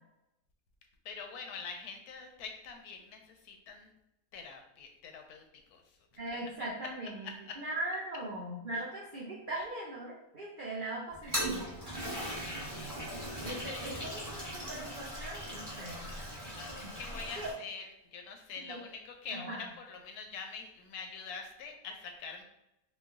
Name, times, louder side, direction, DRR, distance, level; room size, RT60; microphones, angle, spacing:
voice 1, 1.0-3.9 4.3-5.4 5.7-5.8 6.3-6.9 7.2-7.6 8.7-8.8 9.5-9.7 12.0-14.0 16.5-22.4, left 5 dB, 75° left, 3 dB, 1.1 m, -45 dB
voice 2, 6.2-7.3 7.6-11.8 13.4-16.1 16.8-16.9 17.4-17.5 18.7-18.8 19.3-19.6, right 1 dB, 80° right, -4 dB, 0.4 m, -40 dB
Toilet flush, 11.1-17.5, equal, 15° right, 0.8 m, -39 dB
3.0 x 2.2 x 3.6 m, 0.88 s
omnidirectional pair, 1.7 m